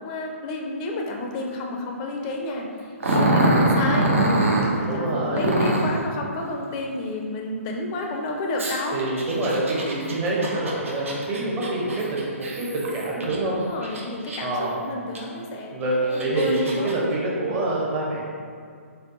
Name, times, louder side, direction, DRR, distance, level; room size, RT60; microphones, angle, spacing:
voice 1, 0.0-9.0 13.4-16.9, left 2 dB, 25° left, 1 dB, 0.4 m, -31 dB
Growling, 3.0-4.7 5.4-6.0 8.6-13.4 13.8-14.6 15.1-15.2 15.9-16.9, right 1 dB, 65° right, 0.7 m, -23 dB
voice 2, 4.8-5.5 8.9-13.6 14.4-14.7 15.7-18.2, right 2 dB, 25° right, -5 dB, 0.8 m, -26 dB
3.7 x 3.4 x 2.6 m, 2.2 s
figure-of-eight pair, 125°, 8 cm